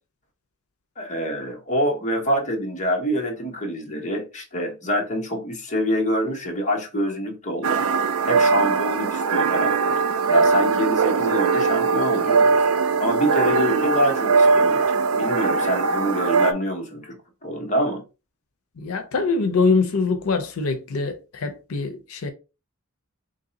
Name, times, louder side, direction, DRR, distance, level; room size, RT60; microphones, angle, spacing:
voice 1, 1.0-7.9 8.2-10.0 10.3-12.6 13.0-17.2 17.4-18.0, equal, 35° left, 1.0 m, -26 dB
sound 1, 7.6-16.5, right 4 dB, 85° right, 0.5 m, -20 dB
voice 2, 18.8-22.3, left 4 dB, 90° left, 0.6 m, -23 dB
3.2 x 2.6 x 3.9 m
head